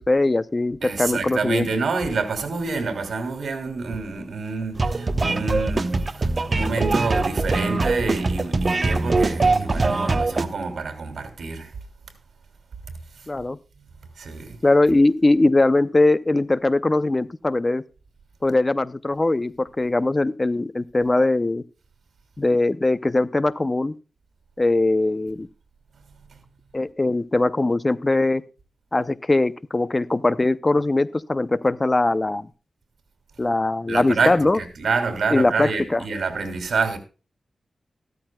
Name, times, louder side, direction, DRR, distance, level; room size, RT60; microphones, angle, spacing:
voice 1, 0.0-1.7 13.3-13.6 14.6-17.8 18.4-21.6 22.4-24.0 24.6-25.5 26.7-28.4 28.9-32.5 33.4-34.6 35.3-36.0, left 2 dB, 25° left, 0.6 m, -21 dB
voice 2, 0.8-11.7 14.2-14.6 33.9-37.0, right 4 dB, 80° right, 2.9 m, -27 dB
sound 1, 4.8-10.4, right 3 dB, 40° right, 1.0 m, -22 dB
14.5 x 13.0 x 2.3 m
wide cardioid pair, 100°, 0 cm